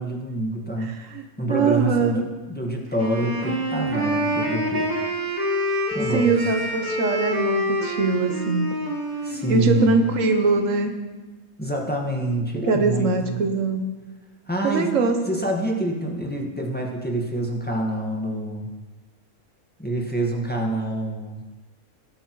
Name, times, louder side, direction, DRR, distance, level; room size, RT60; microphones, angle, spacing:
voice 1, 0.0-0.9 1.4-4.9 5.9-6.5 9.2-10.1 11.6-13.4 14.5-14.9 15.3-18.7 19.8-21.4, right 1 dB, 5° left, 0 dB, 1.5 m, -26 dB
voice 2, 0.8-1.2 1.5-2.2 6.1-8.7 9.5-11.0 12.7-14.0 14.6-15.2, right 4 dB, 80° right, 6 dB, 1.3 m, -22 dB
Wind instrument woodwind instrument, 2.9-10.8, equal, 35° right, 1.7 m, -27 dB
19.0 x 8.6 x 3.1 m, 1.2 s
omnidirectional pair, 1.3 m